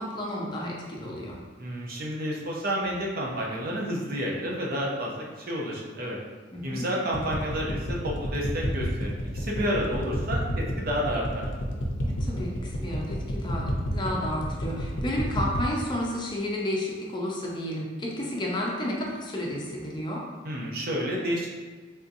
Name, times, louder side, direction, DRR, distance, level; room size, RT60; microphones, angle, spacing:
voice 1, 0.0-1.4 6.5-6.9 12.0-20.2, left 1 dB, 25° left, -3 dB, 0.5 m, -32 dB
voice 2, 1.6-6.2 6.6-11.5 20.4-21.5, equal, 55° right, -3 dB, 0.6 m, -30 dB
sound 1, 7.1-15.7, equal, 75° left, 0.6 m, -29 dB
3.5 x 2.7 x 2.6 m, 1.4 s
head